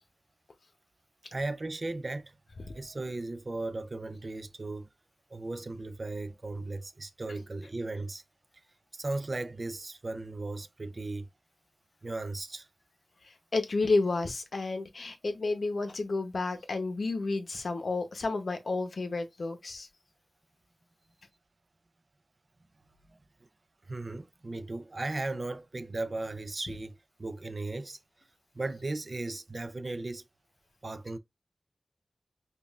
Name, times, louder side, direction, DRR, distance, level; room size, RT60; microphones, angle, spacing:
voice 1, 1.3-2.3 2.6-4.9 5.3-8.2 8.9-11.3 12.0-12.7 23.9-26.9 27.2-28.0 28.5-30.2 30.8-31.2, right 2 dB, 50° right, 0.4 m, -36 dB
voice 2, 13.5-19.9, left 3 dB, 75° left, 0.7 m, -31 dB
5.2 x 2.4 x 2.3 m
wide cardioid pair, 75°, 0 cm